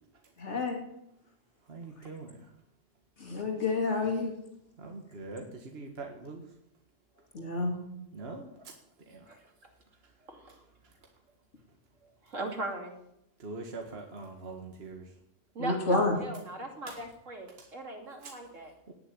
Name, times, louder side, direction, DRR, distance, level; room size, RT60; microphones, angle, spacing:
voice 1, 0.4-0.8 3.2-4.3 7.3-7.8 15.6-16.2, left 3 dB, 65° left, 2 dB, 3.2 m, -29 dB
voice 2, 1.7-2.5 4.8-6.4 8.1-8.7 9.1-9.3 13.4-15.1 16.9-17.0 17.6-17.7 18.2-18.3 18.9-19.0, right 3 dB, 55° right, 3 dB, 1.8 m, -43 dB
voice 3, 12.3-12.9 15.5-18.7, right 2 dB, 80° right, 2 dB, 3.3 m, -38 dB
18.5 x 7.0 x 9.6 m, 0.80 s
omnidirectional pair, 1.3 m